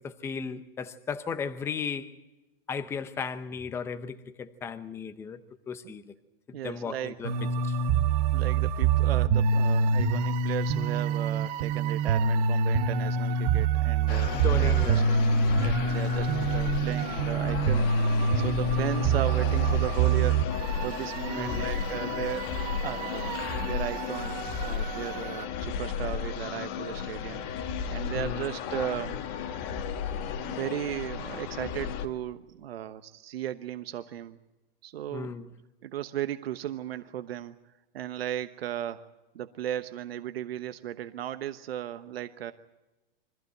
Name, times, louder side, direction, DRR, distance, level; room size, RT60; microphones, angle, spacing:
voice 1, 0.0-2.2 2.7-5.4 5.7-6.1 6.5-7.4 7.6-7.8 14.3-15.1 21.4-21.8 28.1-28.5 35.1-35.6, left 6 dB, 10° left, 0.7 m, -35 dB
voice 2, 6.5-7.1 8.3-15.0 15.5-17.8 18.3-20.4 20.8-22.5 22.8-27.4 27.9-29.2 30.4-34.4 34.8-35.3 35.8-37.6 37.9-39.0 39.3-42.5, right 11 dB, 85° right, 1.2 m, -36 dB
sound 1, 7.2-25.4, right 5 dB, 45° right, 1.2 m, -26 dB
sound 2, 14.1-32.1, left 7 dB, 30° left, 1.5 m, -33 dB
24.0 x 15.5 x 9.2 m
supercardioid pair, 160°, 30 cm